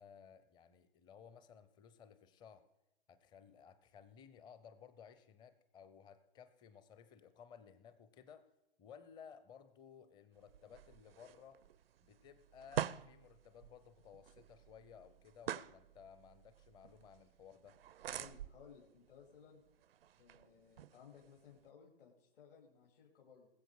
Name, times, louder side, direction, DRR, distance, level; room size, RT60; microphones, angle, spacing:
voice 1, 0.0-2.6 3.1-8.4 8.8-11.6 12.0-17.8, left 7 dB, 15° left, 12 dB, 0.6 m, -58 dB
sound 1, 10.3-21.7, right 10 dB, 65° right, 0.5 m, -48 dB
voice 2, 18.1-19.6 20.2-23.5, left 7 dB, 60° left, -2 dB, 2.6 m, -60 dB
20.5 x 7.7 x 4.8 m, 0.86 s
hypercardioid pair, 130°, 32 cm